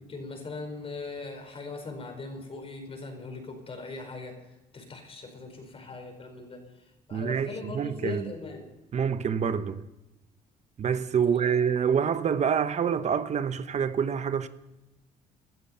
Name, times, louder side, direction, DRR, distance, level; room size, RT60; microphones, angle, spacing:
voice 1, 0.0-6.8 7.1-8.7 11.3-11.6, left 3 dB, 35° left, 4.8 m, -40 dB
voice 2, 7.1-8.2 8.9-9.8 10.8-14.5, right 7 dB, 45° right, 1.1 m, -26 dB
17.0 x 12.0 x 5.6 m
cardioid pair, 95°, 16 cm